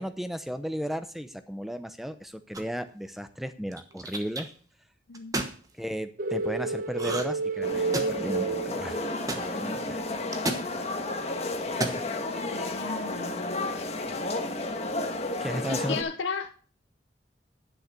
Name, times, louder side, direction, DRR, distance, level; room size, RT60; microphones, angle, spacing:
voice 1, 0.0-4.5 5.8-9.0 9.3-10.0 15.4-16.0, equal, ahead, 10 dB, 0.7 m, -34 dB
sound 1, 2.5-2.9 3.7-4.4 5.1-5.6 6.9-7.4 7.7-8.3 9.3-9.4 10.3-10.7 11.6-12.0, right 2 dB, 20° right, 1.1 m, -31 dB
voice 2, 5.1-5.4 12.5-13.9 15.7-16.5, left 5 dB, 75° left, 4 dB, 0.7 m, -35 dB
sound 2, 6.2-9.4, right 4 dB, 45° right, 0.8 m, -30 dB
sound 3, 7.6-16.0, left 2 dB, 35° left, 1.4 m, -32 dB
11.0 x 6.5 x 6.7 m, 0.43 s
head